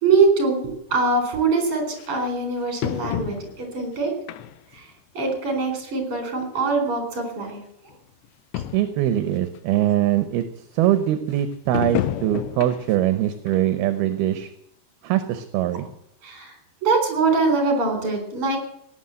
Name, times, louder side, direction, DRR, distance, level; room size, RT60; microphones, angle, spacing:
voice 1, 0.0-4.1 4.7-4.8 5.1-7.6 16.2-16.5 16.8-18.6, right 4 dB, 35° right, 4 dB, 4.8 m, -23 dB
sound 1, 0.9-1.0 2.0-2.1 2.8-3.8 4.3-4.8 5.2-5.3 6.3-6.4 6.6-6.7 7.5-7.6 7.9-8.0 8.3-8.4 8.5-9.0 9.6-9.7 11.7-13.1 13.5-13.6 14.1-14.2, left 13 dB, 90° left, 3.0 m, -30 dB
voice 2, 8.7-14.5 15.0-15.9, right 12 dB, 75° right, 10 dB, 2.7 m, -22 dB
17.5 x 9.7 x 7.7 m, 0.78 s
omnidirectional pair, 4.8 m